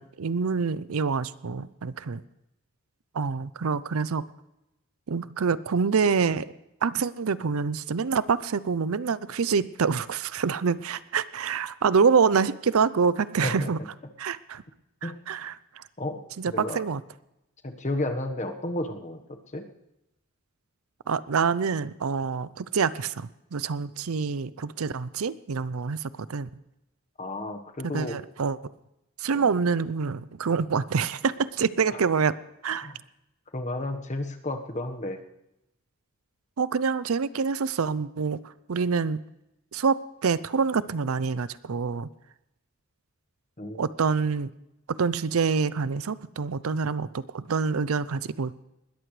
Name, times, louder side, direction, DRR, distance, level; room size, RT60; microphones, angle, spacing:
voice 1, 0.0-2.2 3.1-4.2 5.1-6.5 6.8-13.8 14.2-14.6 15.0-15.8 16.4-17.0 21.1-26.5 27.9-28.6 29.2-32.3 32.6-32.9 36.6-38.4 38.7-39.2 39.7-42.1 43.8-44.5 44.9-48.6, right 5 dB, 80° right, 17 dB, 0.5 m, -26 dB
voice 2, 16.0-16.8 17.6-19.2 19.5-19.7 27.2-28.2 29.3-29.6 31.9-32.0 32.8-33.0 33.5-35.2 43.6-43.8, left 1 dB, 35° left, 6 dB, 1.3 m, -32 dB
20.0 x 14.0 x 3.3 m, 0.88 s
head